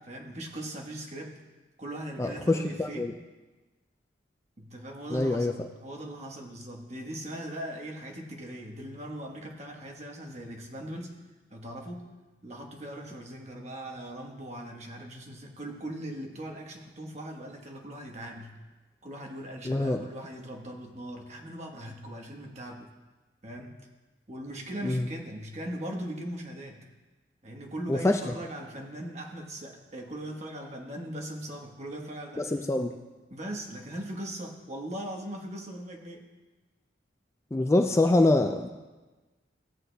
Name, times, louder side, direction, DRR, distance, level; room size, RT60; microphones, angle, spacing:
voice 1, 0.0-1.4 1.8-3.1 4.6-11.2 11.5-12.1 12.4-18.6 19.0-22.9 23.4-23.7 24.3-26.8 27.4-32.4 33.3-36.3, right 1 dB, 40° right, 1 dB, 1.1 m, -40 dB
voice 2, 2.2-3.1 5.1-5.5 19.6-20.0 24.8-25.1 27.9-28.2 32.4-33.0 37.5-38.7, left 2 dB, 15° left, 4 dB, 0.3 m, -25 dB
16.5 x 8.1 x 2.2 m, 1.2 s
head